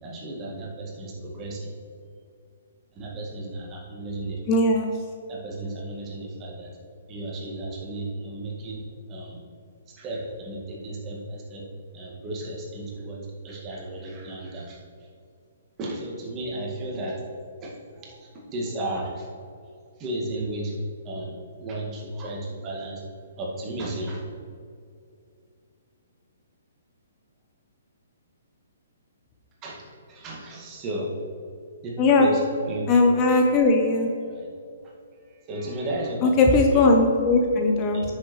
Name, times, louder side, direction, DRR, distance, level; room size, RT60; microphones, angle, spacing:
voice 1, 0.0-1.7 2.9-4.4 5.3-6.8 7.1-9.4 9.9-11.7 11.9-15.1 15.8-17.2 17.6-19.5 20.0-20.8 21.0-23.0 23.4-24.2 29.6-31.2 31.8-32.9 34.2-34.5 34.8-34.9 35.3-36.3 36.7-36.9 37.8-38.0, right 1 dB, 25° right, -2 dB, 1.9 m, -34 dB
voice 2, 4.5-4.9 32.0-32.3 32.9-34.1 36.2-38.0, left 3 dB, 25° left, 2 dB, 0.8 m, -19 dB
9.3 x 6.5 x 3.1 m, 2.4 s
figure-of-eight pair, 125°, 0 cm